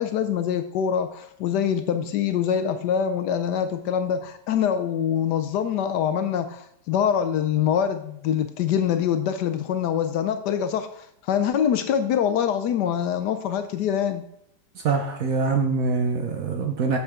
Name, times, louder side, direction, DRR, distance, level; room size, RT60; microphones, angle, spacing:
voice 1, 0.0-14.2, left 8 dB, 75° left, 8 dB, 1.1 m, -24 dB
voice 2, 14.7-17.0, right 4 dB, 60° right, 4 dB, 1.0 m, -24 dB
7.9 x 6.9 x 3.6 m, 0.74 s
omnidirectional pair, 2.0 m